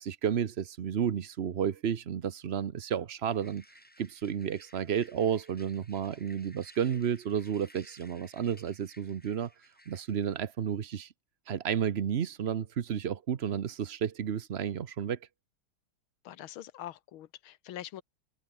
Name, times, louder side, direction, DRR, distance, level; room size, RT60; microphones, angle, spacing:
voice 1, 0.0-3.6 4.0-9.5 9.9-11.1 11.5-15.2, right 8 dB, 80° right, 0.5 m, -32 dB
sound 1, 3.3-10.4, equal, 5° left, 3.5 m, -59 dB
voice 2, 16.3-18.0, left 12 dB, 75° left, 1.7 m, -44 dB
omnidirectional pair, 2.4 m